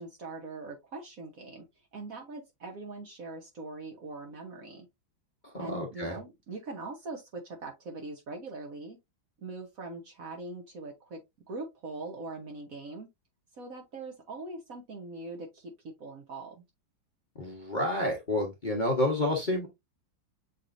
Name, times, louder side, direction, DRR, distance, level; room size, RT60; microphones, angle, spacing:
voice 1, 0.0-1.6 1.9-4.9 5.6-9.0 9.4-11.2 11.5-13.1 13.5-16.5, right 3 dB, 55° right, 1.2 m, -42 dB
voice 2, 5.5-6.2 17.3-19.7, left 1 dB, 30° left, 0.9 m, -29 dB
6.7 x 3.0 x 2.5 m
omnidirectional pair, 2.1 m